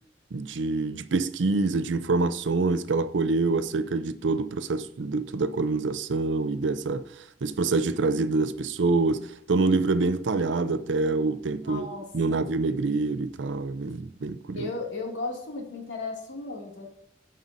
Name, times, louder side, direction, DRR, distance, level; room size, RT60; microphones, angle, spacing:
voice 1, 0.3-7.1 7.4-11.9 12.1-14.6, right 3 dB, 75° right, 0.5 m, -26 dB
voice 2, 11.6-12.4 14.5-16.9, left 3 dB, 80° left, 2.4 m, -35 dB
16.0 x 5.4 x 2.6 m
head